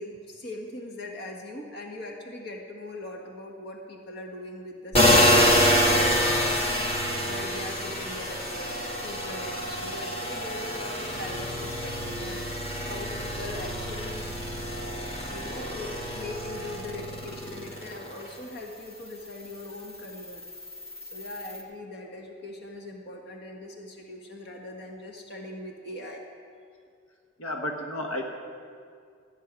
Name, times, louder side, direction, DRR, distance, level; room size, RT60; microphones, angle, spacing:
voice 1, 0.0-6.8 7.2-8.7 9.0-12.4 12.9-14.3 15.2-20.5 21.0-26.2, left 1 dB, 50° left, 1 dB, 1.6 m, -40 dB
sound 1, 4.9-18.3 18.7-21.6, equal, 30° left, 1.8 m, -27 dB
voice 2, 27.4-28.2, left 1 dB, 80° left, 2 dB, 1.4 m, -32 dB
15.0 x 6.8 x 9.3 m, 2.2 s
head